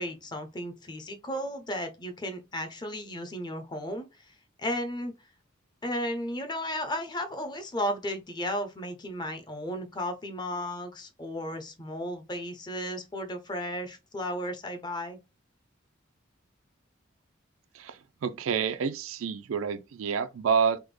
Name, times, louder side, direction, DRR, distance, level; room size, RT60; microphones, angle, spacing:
voice 1, 0.0-4.1 4.6-5.1 5.8-15.2, equal, 20° left, 0.5 m, -34 dB
voice 2, 17.7-20.8, right 6 dB, 85° right, 0.4 m, -28 dB
3.4 x 2.1 x 3.2 m
head